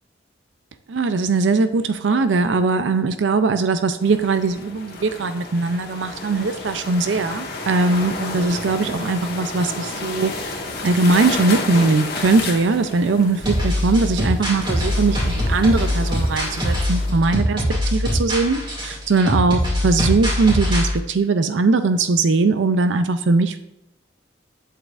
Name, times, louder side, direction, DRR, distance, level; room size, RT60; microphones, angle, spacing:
voice 1, 0.9-10.6 10.8-23.6, right 3 dB, 85° right, 10 dB, 0.5 m, -20 dB
sound 1, 4.0-17.1, left 3 dB, 55° left, 1.3 m, -32 dB
sound 2, 13.4-20.9, left 1 dB, 25° right, 2.3 m, -22 dB
8.0 x 7.5 x 2.5 m, 0.88 s
head